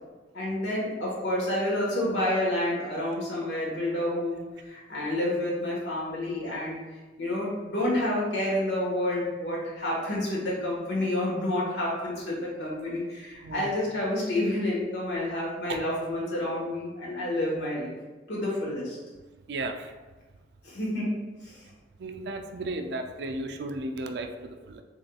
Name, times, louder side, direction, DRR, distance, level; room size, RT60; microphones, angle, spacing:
voice 1, 0.3-6.8 7.2-17.9 18.3-19.0 20.6-21.1 21.4-21.6, left 1 dB, 80° left, -4 dB, 1.3 m, -29 dB
voice 2, 19.5-19.9 22.0-24.8, right 2 dB, 65° right, 6 dB, 0.4 m, -34 dB
4.0 x 3.6 x 2.3 m, 1.3 s
head